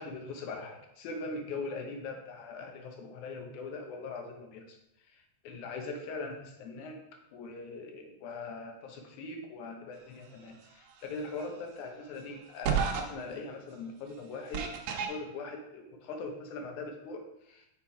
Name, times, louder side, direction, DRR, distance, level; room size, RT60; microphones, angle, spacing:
voice 1, 0.0-4.8 5.4-7.0 7.3-14.6 15.1-17.7, left 3 dB, 75° left, 3 dB, 2.4 m, -41 dB
sound 1, 11.4-11.5 12.6-13.0 14.5-15.1, right 6 dB, 70° right, 1.8 m, -29 dB
5.9 x 4.3 x 4.8 m, 0.83 s
omnidirectional pair, 3.6 m